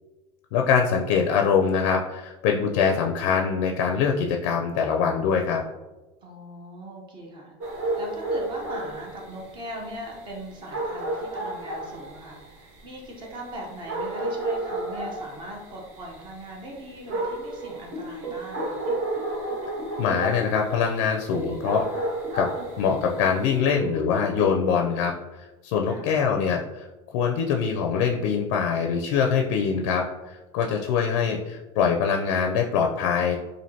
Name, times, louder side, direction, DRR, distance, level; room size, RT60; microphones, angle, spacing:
voice 1, 0.5-5.6 20.0-21.9 22.3-22.5 22.8-26.9 27.1-33.4, left 6 dB, 70° left, 2 dB, 0.4 m, -23 dB
voice 2, 6.2-18.9 25.8-26.2, right 1 dB, 30° right, 0 dB, 0.7 m, -40 dB
sound 1, 7.6-23.6, right 2 dB, 50° right, 1.4 m, -32 dB
sound 2, 17.6-24.5, right 2 dB, 80° right, 1.3 m, -38 dB
4.4 x 2.6 x 2.7 m, 1.1 s
supercardioid pair, 145°, 16 cm